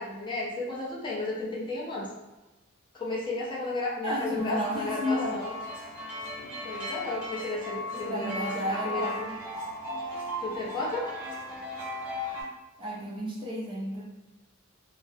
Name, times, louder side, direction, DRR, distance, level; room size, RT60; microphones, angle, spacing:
voice 1, 0.0-2.1 2.9-5.5 6.6-9.3 10.4-11.0, left 2 dB, 25° left, -6 dB, 0.6 m, -33 dB
voice 2, 4.0-5.3 7.9-9.2 12.8-14.0, equal, 25° right, -4 dB, 0.4 m, -32 dB
sound 1, 4.4-12.4, left 1 dB, 5° right, 1.0 m, -37 dB
2.3 x 2.1 x 2.6 m, 1.1 s
head